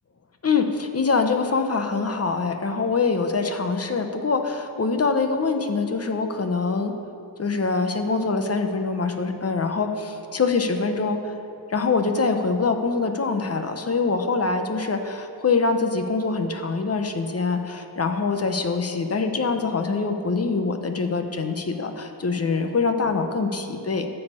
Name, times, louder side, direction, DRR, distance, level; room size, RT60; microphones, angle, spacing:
voice 1, 0.4-6.9 7.4-11.3 11.7-24.1, left 4 dB, 35° left, 6 dB, 0.8 m, -24 dB
12.5 x 5.5 x 8.2 m, 2.7 s
wide cardioid pair, 145°, 43 cm